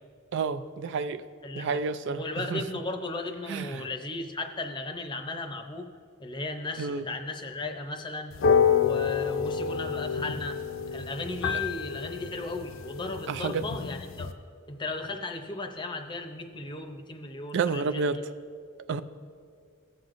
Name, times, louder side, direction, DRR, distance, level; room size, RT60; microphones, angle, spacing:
voice 1, 0.3-1.2 1.5-2.2 2.5-2.6 3.5-3.9 6.8-7.0 13.3-13.6 17.5-18.2 18.9-19.0, right 5 dB, 60° right, 11 dB, 0.3 m, -29 dB
voice 2, 1.4-1.8 2.1-5.9 6.2-8.3 8.8-10.6 10.9-14.3 14.7-18.2, left 2 dB, 20° left, 5 dB, 0.6 m, -36 dB
sound 1, 8.3-14.3, left 6 dB, 70° left, 0.5 m, -28 dB
17.0 x 7.7 x 2.5 m, 2.2 s
head